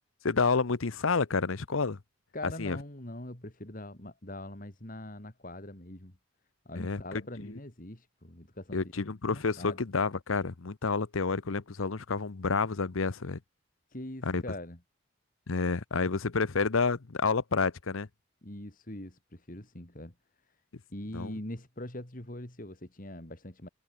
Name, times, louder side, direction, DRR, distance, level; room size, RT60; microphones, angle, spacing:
voice 1, 0.2-2.0 2.6-2.8 6.8-7.2 8.7-13.4 14.2-14.4 15.5-18.1 21.1-21.3, left 4 dB, 90° left, 0.9 m, -29 dB
voice 2, 2.3-6.2 6.6-8.8 9.3-9.8 13.9-14.8 18.4-20.1 20.9-23.7, left 1 dB, 45° left, 2.8 m, -42 dB
head